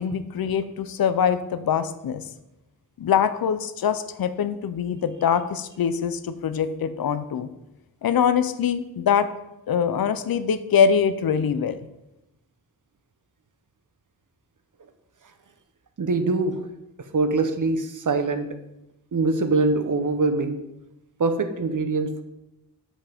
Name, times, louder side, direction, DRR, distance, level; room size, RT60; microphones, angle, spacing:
voice 1, 0.0-2.2 3.0-7.5 8.0-9.3 9.7-11.8, left 7 dB, 70° left, 12 dB, 0.6 m, -23 dB
voice 2, 16.0-16.6 17.1-18.5 19.1-20.6 21.2-22.2, right 3 dB, 55° right, 8 dB, 0.9 m, -23 dB
8.4 x 5.7 x 3.5 m, 0.91 s
cardioid pair, 55°, 37 cm